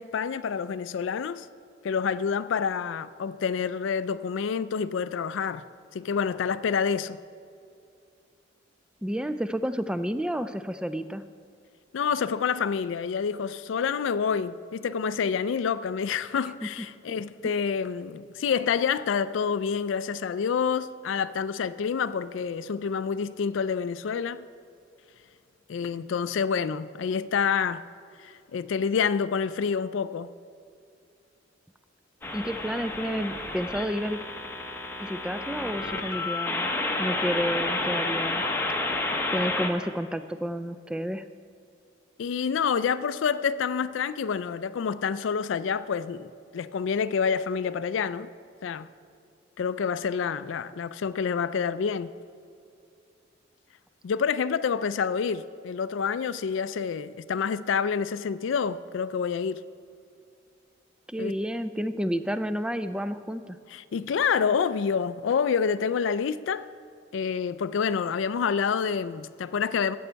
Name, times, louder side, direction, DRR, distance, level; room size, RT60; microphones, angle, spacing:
voice 1, 0.0-1.5 1.8-5.6 5.9-7.2 11.9-24.4 25.7-27.8 28.2-30.3 42.2-48.3 48.6-48.9 49.6-52.1 54.0-59.6 61.2-61.3 63.7-66.7 67.1-70.0, left 6 dB, 75° left, 0.4 m, -28 dB
voice 2, 9.0-11.3 32.3-34.2 35.0-36.7 37.0-38.4 39.3-41.3 61.1-63.6, equal, 5° right, 0.3 m, -30 dB
sound 1, 32.2-39.7, left 2 dB, 10° left, 0.8 m, -30 dB
13.0 x 8.5 x 4.6 m
head